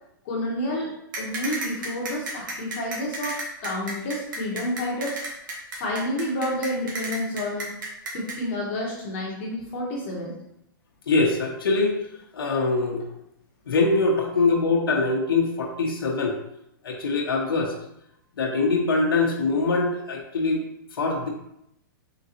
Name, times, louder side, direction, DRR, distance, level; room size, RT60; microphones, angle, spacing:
voice 1, 0.2-0.9 1.2-5.2 5.7-7.8 8.1-10.4, left 1 dB, 35° left, -3 dB, 0.9 m, -29 dB
sound 1, 1.1-8.4, right 2 dB, 60° right, 1.2 m, -32 dB
voice 2, 11.1-12.0 12.3-13.0 13.7-16.4 16.8-17.7 18.4-20.6 21.0-21.3, left 3 dB, 85° left, 0 dB, 0.8 m, -23 dB
3.8 x 3.7 x 2.8 m, 0.79 s
hypercardioid pair, 165°, 12 cm